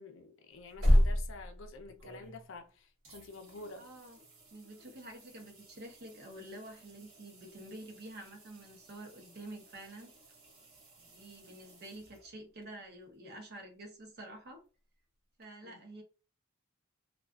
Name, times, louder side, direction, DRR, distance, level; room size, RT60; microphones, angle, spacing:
voice 1, 0.0-3.9 15.6-15.8, left 3 dB, 65° left, 0.5 m, -49 dB
sound 1, 0.5-2.7 3.0-12.6 15.4-15.5, equal, 80° right, 0.9 m, -35 dB
voice 2, 3.8-4.2 4.5-10.2 11.0-14.6 15.4-16.0, right 1 dB, 50° right, 0.7 m, -49 dB
2.3 x 2.3 x 2.3 m
head